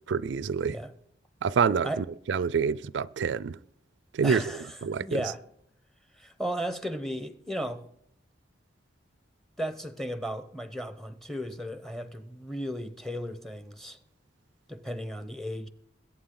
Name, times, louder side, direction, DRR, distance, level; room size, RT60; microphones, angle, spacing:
voice 1, 0.1-0.8 1.4-3.6 4.1-4.4 4.8-5.2, right 6 dB, 80° right, 0.4 m, -27 dB
voice 2, 4.2-4.7 5.0-5.4 6.2-7.8 9.6-14.0 14.7-15.7, equal, ahead, 0.8 m, -35 dB
21.5 x 8.9 x 3.8 m
head